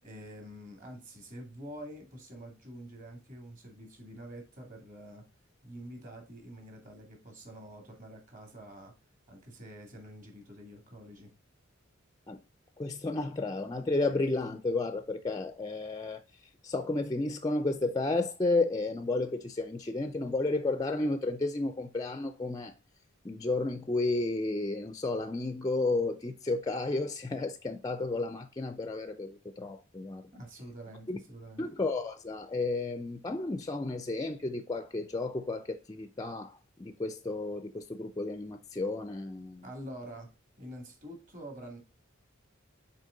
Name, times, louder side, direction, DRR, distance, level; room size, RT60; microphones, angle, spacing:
voice 1, 0.0-5.2 5.6-8.9 9.3-11.3 30.3-31.6 39.6-40.3 40.6-41.8, right 1 dB, 40° right, 2.2 m, -47 dB
voice 2, 12.8-16.2 16.6-22.7 23.2-30.3 31.1-31.2 31.6-39.7, left 2 dB, 20° left, 0.4 m, -32 dB
6.4 x 4.4 x 3.8 m
head